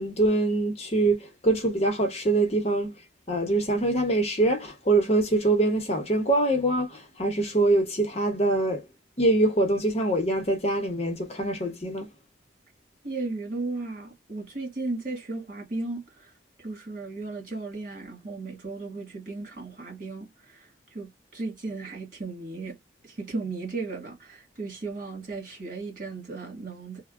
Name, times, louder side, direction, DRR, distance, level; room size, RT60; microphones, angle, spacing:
voice 1, 0.0-2.9 3.3-8.8 9.2-12.1, right 2 dB, 35° left, 0.9 m, -24 dB
voice 2, 13.0-16.3 16.6-22.8 23.0-27.0, right 3 dB, 50° right, 1.8 m, -35 dB
3.3 x 2.2 x 2.4 m
head